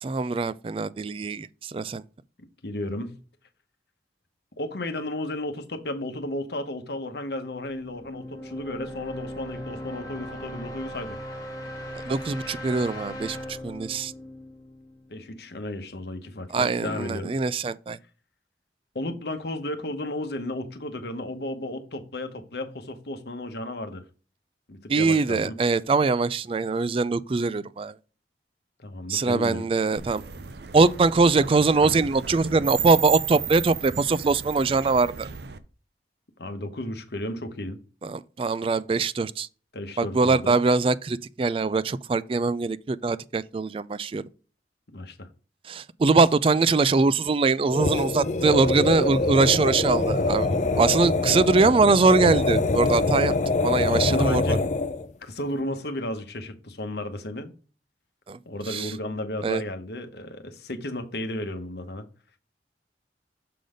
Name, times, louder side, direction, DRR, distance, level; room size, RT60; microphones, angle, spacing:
voice 1, 0.0-2.0 12.1-14.1 16.5-18.0 24.9-27.9 29.1-30.2 30.7-35.3 38.0-39.5 40.0-44.2 45.6-50.5 50.8-53.3 53.6-54.6 58.3-58.4 58.7-58.9 59.4-59.6, right 4 dB, 30° right, 0.3 m, -22 dB
voice 2, 2.4-3.1 4.6-11.2 15.1-17.3 18.9-24.0 24.7-25.5 28.8-29.7 36.4-37.8 39.7-40.6 44.9-45.3 53.8-54.6 55.2-57.5 58.4-62.1, left 1 dB, 65° left, 1.1 m, -33 dB
sound 1, 7.5-15.3, equal, 20° left, 1.8 m, -38 dB
sound 2, 30.0-35.6, right 8 dB, 65° right, 0.6 m, -34 dB
sound 3, 47.7-55.1, left 3 dB, 40° left, 0.6 m, -24 dB
6.7 x 3.9 x 5.0 m
head